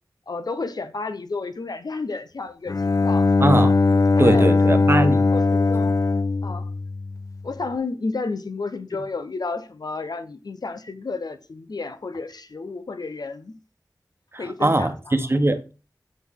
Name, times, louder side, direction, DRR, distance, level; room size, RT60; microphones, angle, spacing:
voice 1, 0.3-3.3 3.9-4.8 5.3-5.9 6.4-6.7 7.4-13.6 14.4-15.2, left 3 dB, 75° left, 0.8 m, -32 dB
Bowed string instrument, 2.7-7.5, left 3 dB, 55° left, 0.4 m, -20 dB
voice 2, 3.4-3.7 4.2-5.3 14.3-15.7, right 1 dB, 35° right, 1.0 m, -21 dB
8.3 x 6.1 x 3.6 m
wide cardioid pair, 70°, 7 cm